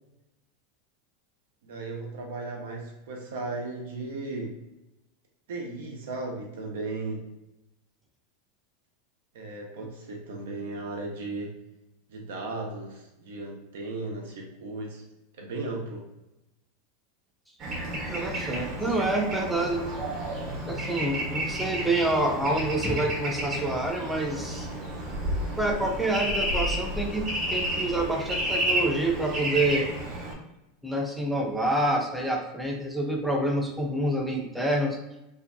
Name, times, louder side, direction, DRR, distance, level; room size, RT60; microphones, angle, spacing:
voice 1, 1.6-4.6 5.5-7.3 9.3-11.5 12.1-15.0 15.4-16.1, right 2 dB, 80° right, 0 dB, 0.6 m, -36 dB
Bird / Traffic noise roadway noise, 17.6-30.3, right 1 dB, 40° right, 0.8 m, -31 dB
voice 2, 17.9-19.9 20.6-24.7 25.6-29.9 30.8-35.0, right 1 dB, 5° right, 1 dB, 0.5 m, -27 dB
2.5 x 2.2 x 2.5 m, 0.92 s
supercardioid pair, 115°, 0 cm